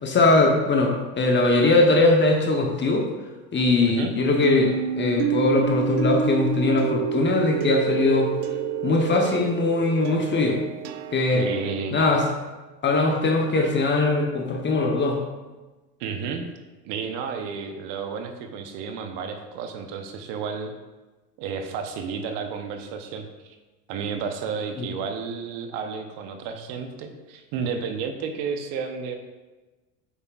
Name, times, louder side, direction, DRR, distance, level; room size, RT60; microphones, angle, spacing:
voice 1, 0.0-3.1 3.5-8.3 8.8-10.6 11.1-11.5 11.9-12.3 12.8-15.2 24.8-24.9, left 2 dB, 20° left, 2 dB, 0.9 m, -21 dB
sound 1, 4.4-11.7, right 9 dB, 85° right, 0.7 m, -28 dB
voice 2, 11.3-12.0 16.0-16.4 16.8-20.7 21.4-23.6 23.9-29.1, right 6 dB, 55° right, 5 dB, 0.9 m, -31 dB
8.2 x 5.5 x 2.4 m, 1.2 s
supercardioid pair, 105°, 49 cm